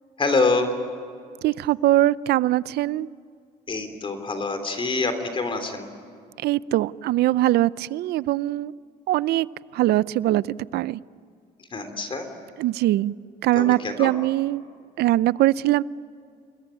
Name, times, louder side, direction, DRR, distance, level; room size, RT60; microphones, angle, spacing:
voice 1, 0.2-0.7 3.7-5.9 11.7-12.3 13.5-14.1, left 3 dB, 30° left, 8 dB, 3.4 m, -25 dB
voice 2, 1.4-3.1 6.4-8.7 9.1-9.5 9.7-10.5 10.7-11.0 12.6-13.1 13.4-14.6 15.0-15.8, right 15 dB, 75° right, 19 dB, 0.6 m, -21 dB
28.5 x 21.0 x 9.2 m, 2.2 s
cardioid pair, 110°, 17 cm